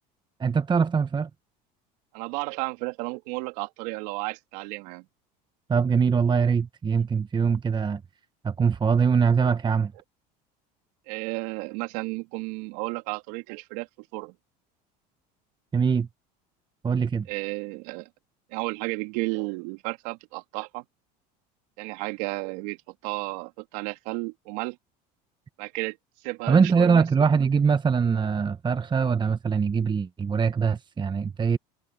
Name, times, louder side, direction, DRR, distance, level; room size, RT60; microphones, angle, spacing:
voice 1, 0.4-1.3 5.7-8.0 8.4-9.9 15.7-16.1 16.8-17.3 26.5-31.6, right 6 dB, 20° right, 1.0 m, -22 dB
voice 2, 2.1-5.0 11.1-13.9 14.1-14.3 17.3-18.1 18.5-20.8 21.8-24.8 25.6-26.0 26.2-27.0, right 26 dB, 70° right, 2.6 m, -33 dB
hypercardioid pair, 90°, 21 cm